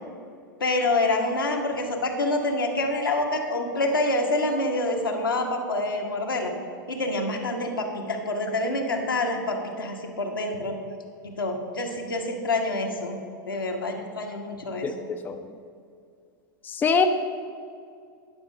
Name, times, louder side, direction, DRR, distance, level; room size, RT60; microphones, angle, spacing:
voice 1, 0.6-6.5 6.9-10.8 11.2-13.2 13.5-15.1, left 2 dB, 80° left, 1 dB, 1.4 m, -27 dB
voice 2, 16.6-17.0, left 5 dB, 15° left, 6 dB, 0.5 m, -22 dB
10.5 x 6.1 x 6.4 m, 2.3 s
figure-of-eight pair, 95°, 11 cm